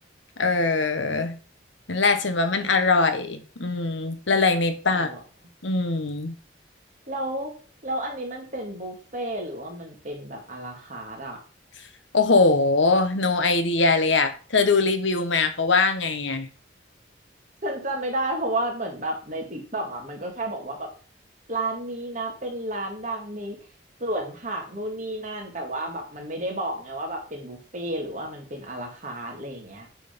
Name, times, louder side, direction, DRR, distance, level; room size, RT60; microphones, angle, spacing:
voice 1, 0.4-1.4 1.9-5.1 5.6-6.3 12.1-16.5, left 3 dB, 75° left, 8 dB, 1.1 m, -22 dB
voice 2, 4.9-5.2 7.1-7.5 7.8-11.4 17.6-20.9 21.5-23.6 24.0-29.9, right 1 dB, 40° right, 1 dB, 2.0 m, -32 dB
8.4 x 3.8 x 5.2 m, 0.38 s
head